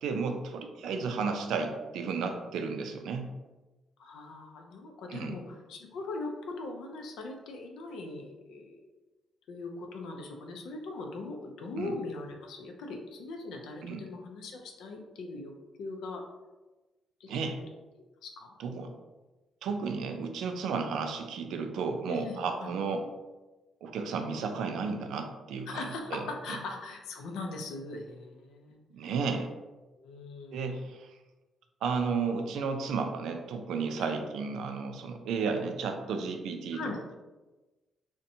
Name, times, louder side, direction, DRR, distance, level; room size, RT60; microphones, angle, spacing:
voice 1, 0.0-3.3 5.1-5.4 11.8-11.9 13.8-14.0 17.3-17.6 18.6-18.9 19.6-23.0 23.8-26.2 28.9-29.5 30.5-31.1 31.8-36.8, right 5 dB, 90° right, 5 dB, 0.3 m, -33 dB
voice 2, 4.0-8.8 9.5-15.5 15.8-16.2 17.2-17.5 18.2-18.9 22.1-22.7 25.7-28.8 30.0-30.8 34.0-34.1 36.7-37.0, left 3 dB, 90° left, 2 dB, 0.4 m, -40 dB
2.6 x 2.1 x 2.7 m, 1.1 s
cardioid pair, 140°, 0 cm